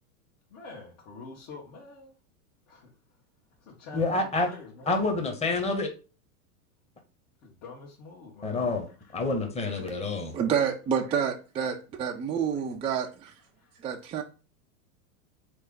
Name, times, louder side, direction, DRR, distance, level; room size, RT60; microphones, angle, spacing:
voice 1, 0.5-2.1 2.7-2.9 3.6-4.9 7.4-9.2 13.6-13.7, left 3 dB, 55° left, 1.6 m, -47 dB
voice 2, 3.9-4.5 4.9-5.9 8.4-8.9 9.1-10.3, left 3 dB, 15° left, 1.1 m, -27 dB
voice 3, 10.3-13.3 13.8-14.2, right 7 dB, 15° right, 0.4 m, -29 dB
3.8 x 3.4 x 3.6 m
hypercardioid pair, 105°, 45 cm